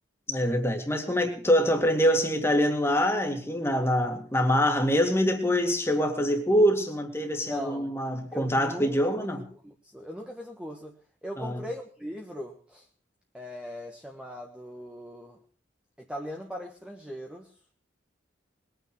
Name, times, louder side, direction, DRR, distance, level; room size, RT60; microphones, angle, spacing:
voice 1, 0.3-9.5 11.4-11.6, equal, 15° left, 4 dB, 2.3 m, -25 dB
voice 2, 7.5-7.9 8.3-9.0 9.6-10.9 11.2-12.8 13.3-15.4 16.0-17.5, equal, 5° right, 1 dB, 1.3 m, -39 dB
21.0 x 9.1 x 6.1 m, 0.41 s
head